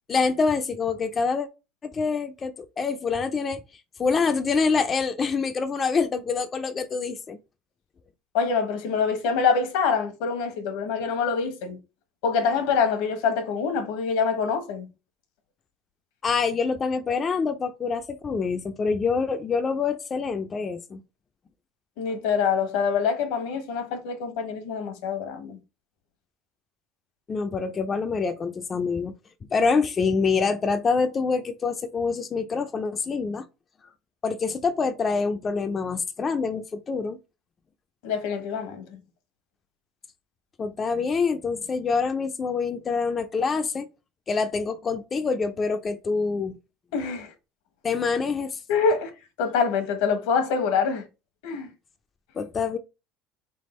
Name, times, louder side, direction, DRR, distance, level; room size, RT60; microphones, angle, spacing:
voice 1, 0.1-1.5 1.8-3.6 4.0-7.4 16.2-21.0 27.3-29.1 29.5-33.4 34.2-37.2 40.6-43.9 44.3-46.5 47.8-48.6 52.4-52.8, left 5 dB, 35° left, 0.4 m, -26 dB
voice 2, 8.3-11.8 12.2-14.9 22.0-25.6 38.0-39.0 46.9-47.3 48.7-49.1 49.4-51.0 51.4-51.7, left 5 dB, 80° left, 1.0 m, -25 dB
3.6 x 3.4 x 3.1 m
supercardioid pair, 90°, 0 cm